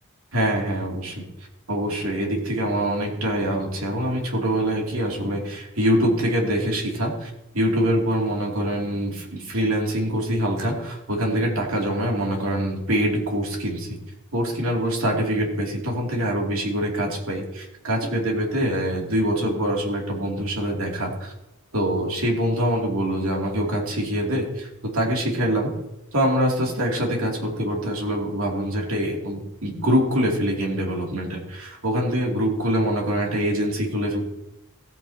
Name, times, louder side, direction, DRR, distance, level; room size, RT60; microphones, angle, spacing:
voice 1, 0.3-1.3 1.7-14.0 14.3-21.3 21.7-25.7 26.1-34.2, equal, 80° right, 0 dB, 2.8 m, -24 dB
15.5 x 9.2 x 2.9 m, 0.93 s
head